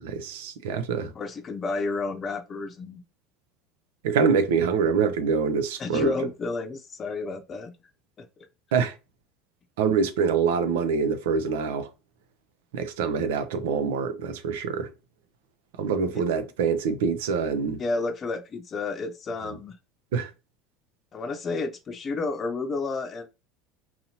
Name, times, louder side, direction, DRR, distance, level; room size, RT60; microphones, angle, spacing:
voice 1, 0.0-1.1 4.0-6.1 8.7-8.9 9.8-11.9 12.7-14.9 15.8-17.8 20.1-20.3, right 6 dB, 75° right, 0.6 m, -25 dB
voice 2, 1.1-3.0 5.8-7.7 8.2-8.3 17.8-19.8 21.1-23.3, left 3 dB, 35° left, 0.6 m, -31 dB
4.1 x 2.7 x 2.8 m
hypercardioid pair, 85°, 0 cm